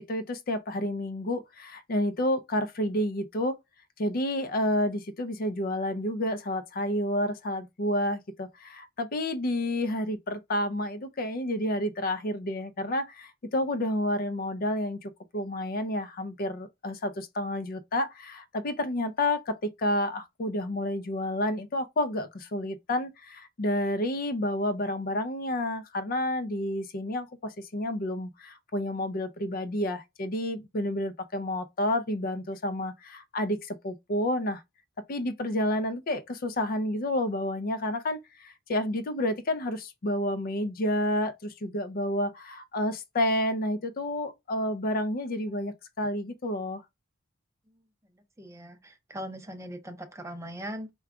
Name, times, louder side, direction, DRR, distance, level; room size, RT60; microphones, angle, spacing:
voice 1, 0.1-3.6 4.0-34.6 35.1-46.8, left 1 dB, 45° left, 0.5 m, -30 dB
voice 2, 48.4-50.9, equal, 15° right, 0.6 m, -40 dB
4.7 x 2.3 x 3.5 m
head